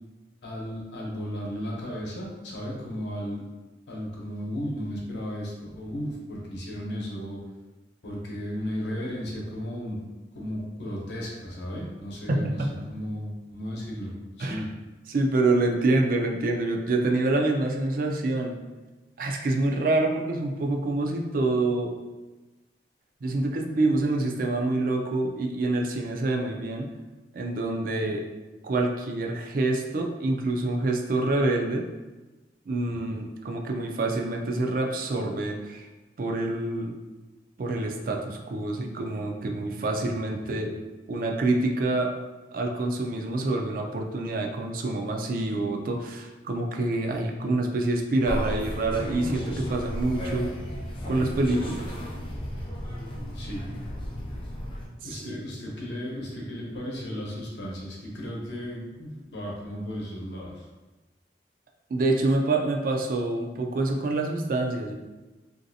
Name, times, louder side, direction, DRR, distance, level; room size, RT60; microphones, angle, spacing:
voice 1, 0.4-3.4 3.9-7.4 8.0-10.0 10.3-14.7 33.0-33.1 40.6-40.8 53.3-53.7 55.0-60.7, equal, 75° left, -3 dB, 0.8 m, -35 dB
voice 2, 12.3-12.7 14.4-14.6 15.1-18.6 19.2-21.9 23.2-26.9 27.3-28.2 28.6-31.8 32.7-35.9 36.2-36.9 37.6-40.7 41.1-42.1 42.5-50.5 51.0-51.9 55.1-55.4 61.9-64.9, right 2 dB, 50° right, 2 dB, 0.3 m, -26 dB
sound 1, 48.2-54.9, equal, 30° left, 0.4 m, -34 dB
3.1 x 2.6 x 2.7 m, 1.2 s
head